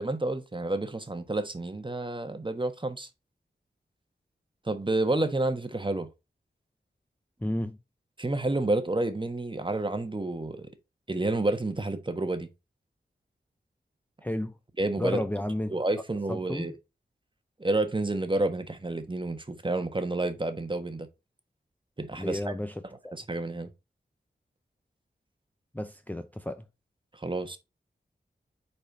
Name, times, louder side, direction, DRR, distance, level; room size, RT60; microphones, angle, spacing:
voice 1, 0.0-3.1 4.6-6.1 8.2-10.7 11.1-12.5 14.8-15.2 15.7-16.7 17.6-21.1 22.0-22.5 23.1-23.7 27.1-27.6, right 2 dB, 25° right, 1.2 m, -29 dB
voice 2, 7.4-7.8 14.2-14.5 15.0-15.8 16.3-16.7 22.2-23.2 25.7-26.7, left 1 dB, 10° left, 0.5 m, -32 dB
5.0 x 4.3 x 5.2 m
cardioid pair, 50°, 18 cm